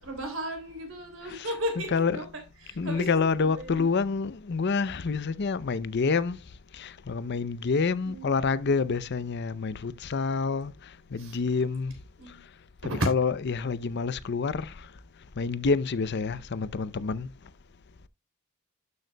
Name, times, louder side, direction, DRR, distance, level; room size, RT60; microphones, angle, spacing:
voice 1, 0.0-3.9 8.0-8.3 11.2-11.4 12.2-12.4 12.8-13.1, equal, 70° right, 3.4 m, -35 dB
voice 2, 1.9-2.2 2.8-6.4 6.7-10.7 11.1-11.9 13.1-14.9 15.4-17.3, left 4 dB, 55° left, 0.5 m, -27 dB
12.5 x 6.6 x 2.2 m
head